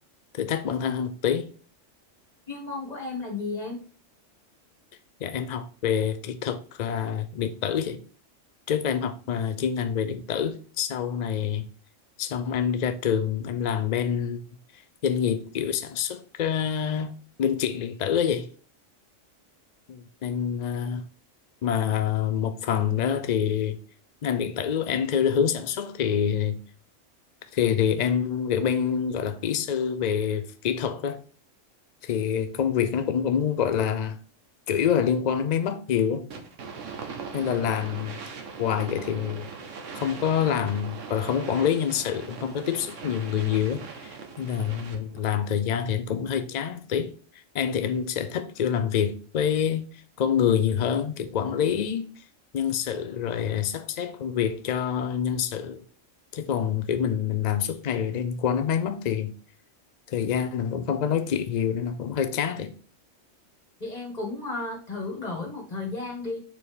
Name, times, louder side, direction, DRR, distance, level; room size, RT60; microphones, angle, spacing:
voice 1, 0.3-1.5 5.2-8.0 8.7-11.6 12.2-14.4 15.0-17.1 17.4-18.5 19.9-21.0 21.6-23.8 24.2-26.6 27.5-31.2 32.0-34.2 34.7-36.3 37.3-38.2 38.6-39.5 39.9-47.1 47.5-49.9 50.2-52.1 52.5-55.8 56.3-59.3 60.1-62.7, left 8 dB, 80° left, 0.3 m, -26 dB
voice 2, 2.5-3.8 63.8-66.4, left 3 dB, 30° left, 1.9 m, -33 dB
sound 1, 36.3-45.2, right 5 dB, 75° right, 1.3 m, -40 dB
4.6 x 4.1 x 5.0 m
omnidirectional pair, 1.3 m